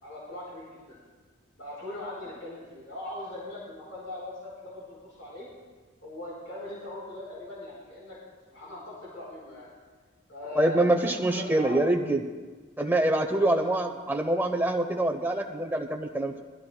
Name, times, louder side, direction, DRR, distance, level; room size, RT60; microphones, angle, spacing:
voice 1, 0.0-1.0 1.6-5.5 6.0-8.2 8.5-9.7 10.3-11.8 13.3-13.6, left 1 dB, 75° left, -7 dB, 4.5 m, -40 dB
voice 2, 10.6-12.2 12.8-16.4, right 1 dB, 10° right, 4 dB, 0.8 m, -25 dB
22.0 x 14.5 x 2.3 m, 1.4 s
head